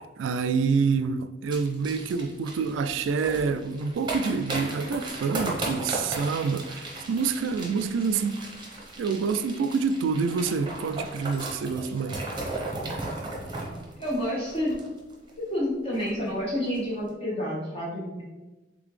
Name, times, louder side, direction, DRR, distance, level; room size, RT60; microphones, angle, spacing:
voice 1, 0.0-8.4 9.0-12.2, right 5 dB, 85° right, 0.3 m, -27 dB
sound 1, 1.5-15.3 15.6-15.7 15.9-16.3 16.6-16.8, right 2 dB, 25° right, 0.8 m, -36 dB
voice 2, 14.0-14.8 15.5-18.2, equal, 30° left, 0.9 m, -29 dB
4.0 x 3.5 x 3.1 m
head